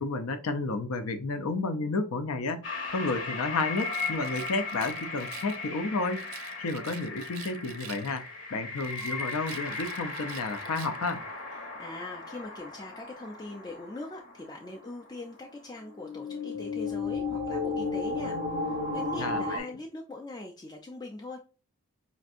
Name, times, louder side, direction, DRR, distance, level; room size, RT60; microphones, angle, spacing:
voice 1, 0.0-2.6 2.9-6.2 6.6-8.3 8.5-11.2 19.2-19.7, left 3 dB, 80° left, 0.5 m, -31 dB
sound 1, 2.6-14.4 14.8-14.9 15.8-19.6, left 3 dB, 60° left, 0.9 m, -35 dB
Rattle, 3.7-5.7 6.1-8.4 8.7-11.2, right 10 dB, 75° right, 0.4 m, -47 dB
voice 2, 11.5-21.5, left 2 dB, 20° left, 0.3 m, -42 dB
5.0 x 2.6 x 2.5 m
head